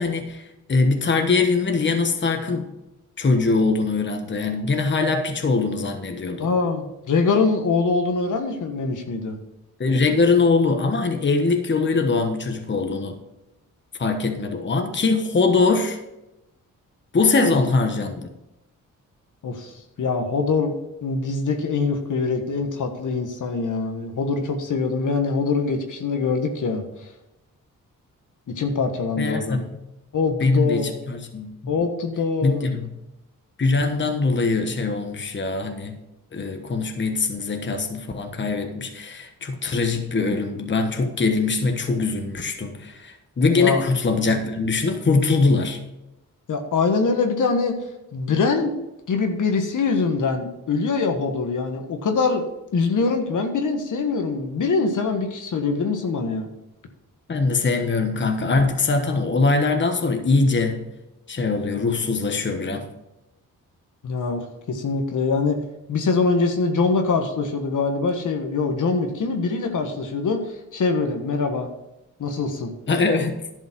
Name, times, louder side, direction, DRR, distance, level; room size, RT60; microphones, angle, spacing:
voice 1, 0.0-2.7 3.2-6.5 9.8-13.2 14.0-16.0 17.1-18.3 29.2-29.8 30.4-31.5 32.4-32.9 33.6-36.0 36.3-45.8 57.3-60.9 61.3-62.9 72.9-73.4, left 3 dB, 35° left, 6 dB, 1.2 m, -22 dB
voice 2, 6.4-9.4 19.4-20.7 21.0-26.8 28.5-29.6 30.1-31.0 31.7-32.6 43.5-43.8 46.5-47.8 48.1-48.7 49.1-52.5 52.7-56.5 64.0-65.6 65.9-70.4 70.7-71.7 72.2-72.7, left 4 dB, 65° left, 5 dB, 1.5 m, -23 dB
11.0 x 5.4 x 6.1 m, 0.93 s
cardioid pair, 75°, 33 cm